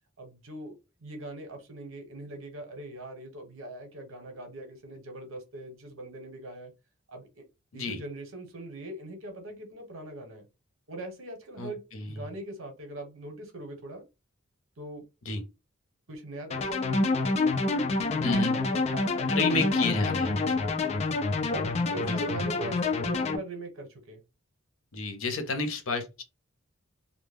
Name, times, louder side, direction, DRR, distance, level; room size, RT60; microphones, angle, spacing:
voice 1, 0.2-0.7 1.0-6.7 7.1-7.4 7.7-10.5 10.9-11.8 12.1-14.0 14.8-15.0 16.1-21.0 21.5-24.2, right 1 dB, 85° right, 1.0 m, -41 dB
voice 2, 11.6-12.1 15.3-15.4 18.2-18.6 19.3-20.5 22.0-22.5 24.9-26.2, left 3 dB, 80° left, 0.7 m, -31 dB
sound 1, 16.5-23.4, left 3 dB, 30° left, 0.3 m, -27 dB
2.2 x 2.0 x 3.3 m
head